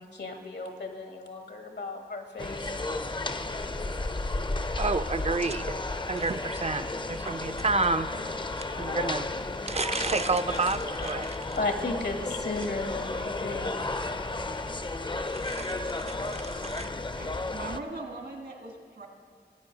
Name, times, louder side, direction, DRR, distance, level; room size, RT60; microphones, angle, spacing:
voice 1, 0.0-2.8 3.0-3.3 11.6-14.1, left 3 dB, 80° left, 4 dB, 1.4 m, -35 dB
sound 1, 2.4-17.8, left 2 dB, 30° left, 0.5 m, -33 dB
voice 2, 4.8-5.8 6.1-8.1 8.8-9.3 9.6-11.4 15.3-16.9, right 3 dB, 40° right, 12 dB, 0.4 m, -30 dB
voice 3, 17.1-19.1, right 2 dB, 75° right, 2 dB, 1.6 m, -40 dB
18.0 x 8.9 x 3.9 m, 2.1 s
wide cardioid pair, 60°, 17 cm